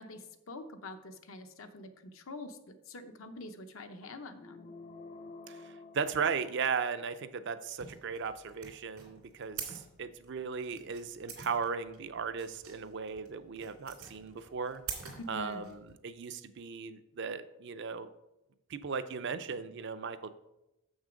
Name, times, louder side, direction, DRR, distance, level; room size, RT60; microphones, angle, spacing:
voice 1, 0.0-4.7 15.2-15.7, left 2 dB, 65° left, 8 dB, 0.8 m, -46 dB
sound 1, 4.4-7.1, left 3 dB, 35° left, 0.4 m, -50 dB
voice 2, 5.5-14.8 15.3-18.1 18.7-20.3, right 5 dB, 55° right, 11 dB, 0.5 m, -37 dB
sound 2, 7.8-15.9, right 6 dB, 90° right, 2.5 m, -46 dB
7.0 x 6.3 x 5.1 m, 0.92 s
head